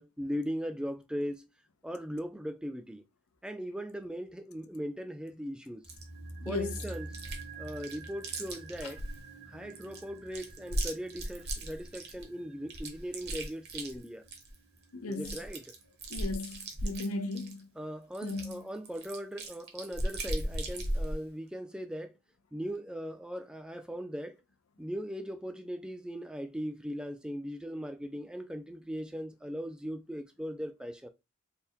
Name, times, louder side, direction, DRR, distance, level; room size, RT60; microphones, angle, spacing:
voice 1, 0.0-1.5 1.8-3.0 3.4-5.8 6.5-7.1 7.6-9.0 9.5-14.2 15.1-15.6 17.8-22.1 22.5-24.3 24.8-31.1, equal, 5° right, 0.4 m, -39 dB
Chewing mastication, 5.8-6.0 6.7-7.4 7.7-9.2 9.7-12.2 12.7-14.5 14.8-14.9 15.1-17.6 18.1-21.2, right 1 dB, 50° right, 1.0 m, -37 dB
sound 1, 5.8-16.1 16.3-16.4, right 2 dB, 75° right, 1.5 m, -48 dB
voice 2, 6.4-6.9 8.8-8.9 14.9-15.4 16.1-17.7 18.2-18.6, left 2 dB, 85° left, 0.6 m, -36 dB
3.5 x 2.2 x 4.4 m
head